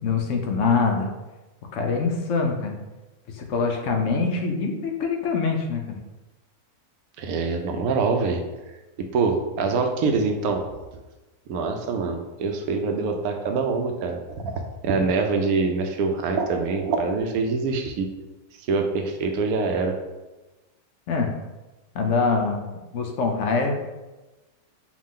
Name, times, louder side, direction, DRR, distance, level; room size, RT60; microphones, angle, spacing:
voice 1, 0.0-1.1 1.7-2.7 3.3-6.0 21.1-21.3 21.9-23.7, left 4 dB, 65° left, 3 dB, 0.8 m, -24 dB
voice 2, 7.2-8.4 9.1-10.7 11.5-14.2 14.4-18.1 18.7-20.0, right 4 dB, 75° right, 4 dB, 1.0 m, -24 dB
4.7 x 2.4 x 3.6 m, 1.1 s
omnidirectional pair, 1.6 m